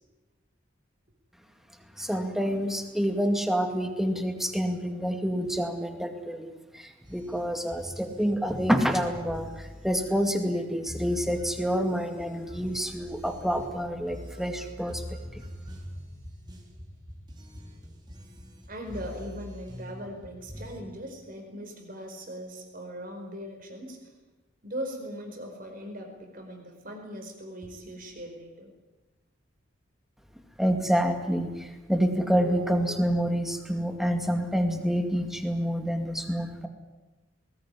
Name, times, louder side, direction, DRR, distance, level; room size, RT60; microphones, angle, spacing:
voice 1, 2.0-15.0 15.3-15.4 30.6-36.7, equal, ahead, 5 dB, 2.1 m, -28 dB
sound 1, 7.0-20.8, equal, 25° right, 4.1 m, -44 dB
voice 2, 18.7-24.1 24.6-28.7, equal, 45° right, 3 dB, 4.9 m, -40 dB
20.5 x 19.0 x 9.8 m, 1.2 s
head